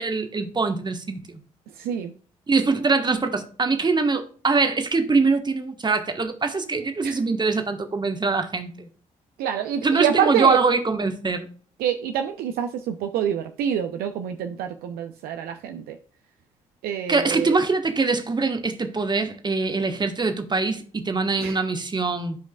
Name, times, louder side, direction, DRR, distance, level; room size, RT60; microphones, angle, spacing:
voice 1, 0.0-1.4 2.5-8.9 9.8-11.5 17.1-22.4, right 4 dB, 25° right, 1.3 m, -23 dB
voice 2, 1.8-2.1 7.0-7.2 9.4-10.6 11.8-15.9 16.8-17.6 21.4-21.5, right 9 dB, 65° right, 0.6 m, -26 dB
12.5 x 5.1 x 2.3 m
figure-of-eight pair, 45°, 17 cm